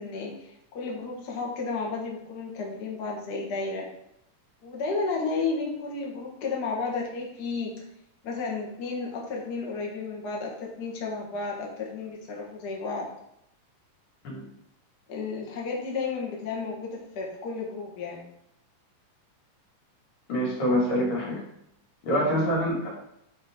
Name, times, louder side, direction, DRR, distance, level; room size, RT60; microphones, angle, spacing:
voice 1, 0.0-3.9 4.6-7.7 8.2-13.1 15.1-18.3, left 4 dB, 55° left, -2 dB, 1.1 m, -32 dB
voice 2, 20.3-21.3 22.0-22.9, equal, 80° left, -4 dB, 3.9 m, -25 dB
9.6 x 3.6 x 3.7 m, 0.77 s
omnidirectional pair, 3.8 m